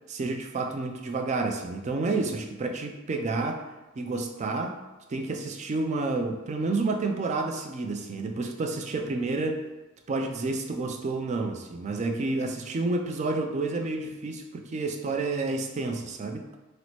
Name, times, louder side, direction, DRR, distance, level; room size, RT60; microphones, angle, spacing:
voice 1, 0.1-3.7 4.0-4.8 5.1-9.6 10.1-16.4, right 3 dB, 35° right, 4 dB, 0.3 m, -30 dB
3.0 x 2.1 x 4.1 m, 1.1 s
head